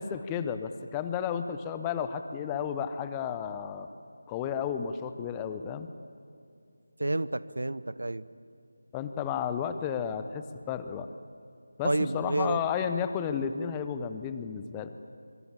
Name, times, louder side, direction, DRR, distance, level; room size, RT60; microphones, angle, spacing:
voice 1, 0.0-3.9 4.3-5.9 8.9-11.1 11.8-14.9, left 7 dB, 10° left, 10 dB, 0.8 m, -32 dB
voice 2, 7.0-8.2 11.8-12.6, right 2 dB, 65° right, 17 dB, 0.8 m, -29 dB
25.0 x 23.5 x 8.6 m, 2.4 s
figure-of-eight pair, 160°, 0 cm